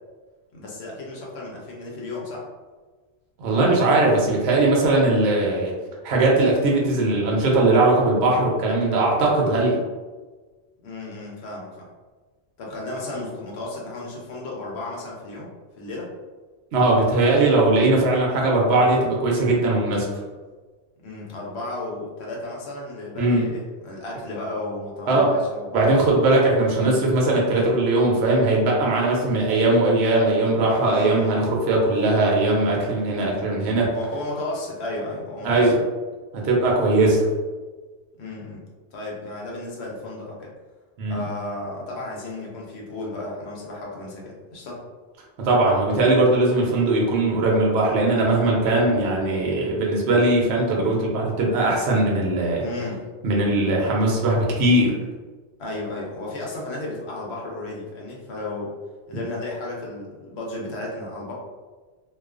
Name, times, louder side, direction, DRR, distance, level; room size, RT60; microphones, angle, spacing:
voice 1, 0.5-2.5 10.8-11.9 12.6-15.5 15.8-16.1 21.0-26.1 30.8-31.3 33.8-35.7 38.2-38.6 38.9-40.5 41.1-44.8 52.6-53.0 55.6-58.8 59.1-61.3, left 2 dB, 70° left, -3 dB, 0.9 m, -34 dB
voice 2, 3.4-5.7 6.0-9.8 16.7-20.1 23.2-23.5 25.1-25.3 25.7-33.9 35.4-35.8 36.3-37.3 41.0-41.2 45.4-52.6 53.2-55.0 59.1-59.2, right 2 dB, 70° right, -2 dB, 0.8 m, -20 dB
2.3 x 2.2 x 2.4 m, 1.3 s
omnidirectional pair, 1.2 m